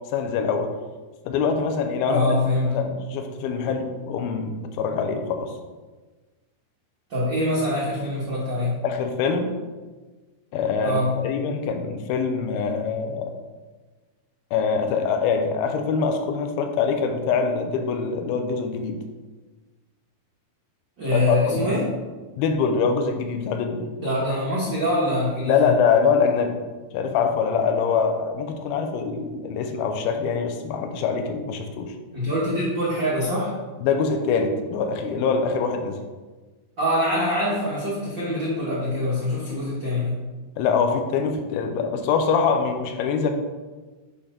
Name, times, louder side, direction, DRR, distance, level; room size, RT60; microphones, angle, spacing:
voice 1, 0.1-0.7 1.3-2.4 2.7-5.5 8.8-9.5 10.5-11.0 11.2-13.3 14.5-19.0 21.1-21.7 22.4-23.9 25.5-26.6 26.9-31.9 33.8-36.0 40.6-43.3, left 5 dB, 85° left, 5 dB, 2.6 m, -24 dB
voice 2, 2.1-2.7 7.1-8.8 10.8-11.1 21.0-21.8 24.0-25.7 32.1-33.5 36.8-40.1, left 1 dB, 55° right, -9 dB, 1.3 m, -24 dB
8.5 x 3.4 x 5.0 m, 1.3 s
omnidirectional pair, 4.2 m